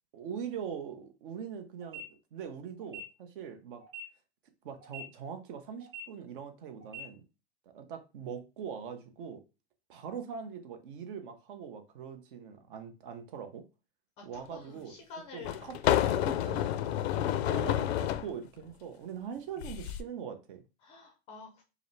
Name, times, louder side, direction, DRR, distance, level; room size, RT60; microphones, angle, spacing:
voice 1, 0.1-2.0 2.3-3.8 4.6-7.2 7.7-9.4 9.9-13.6 14.2-14.9 15.3-16.6 17.4-20.6, right 7 dB, 55° right, 0.8 m, -42 dB
sound 1, 1.8-2.0 2.8-3.0 3.8-4.0 4.8-5.0 5.8-6.0 6.8-7.0, right 5 dB, 25° right, 1.7 m, -43 dB
sound 2, 14.3-14.4 15.4-18.3 19.6-20.0, left 12 dB, 80° left, 0.5 m, -29 dB
voice 2, 14.5-15.6 16.4-17.1 20.8-21.6, left 5 dB, 20° left, 0.4 m, -48 dB
4.8 x 2.0 x 3.2 m
supercardioid pair, 165°, 31 cm